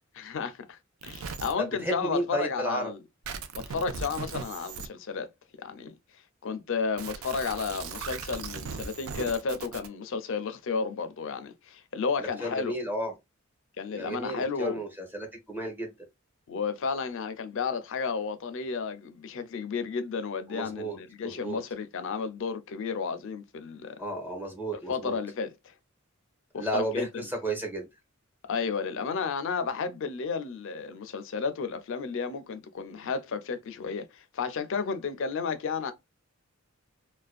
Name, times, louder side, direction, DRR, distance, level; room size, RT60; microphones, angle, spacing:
voice 1, 0.2-3.0 3.5-5.3 5.6-5.9 6.4-12.7 13.8-14.8 16.5-24.0 24.9-25.7 26.5-27.3 28.5-35.9, left 5 dB, 65° left, 0.4 m, -32 dB
sound 1, 1.0-1.5 3.3-4.9 7.0-9.9, right 5 dB, 80° right, 0.4 m, -38 dB
voice 2, 1.6-2.9 12.2-13.1 13.9-15.9 20.5-21.0 21.2-21.6 24.0-25.2 26.6-27.9, right 1 dB, 10° right, 0.6 m, -33 dB
2.5 x 2.2 x 2.3 m
head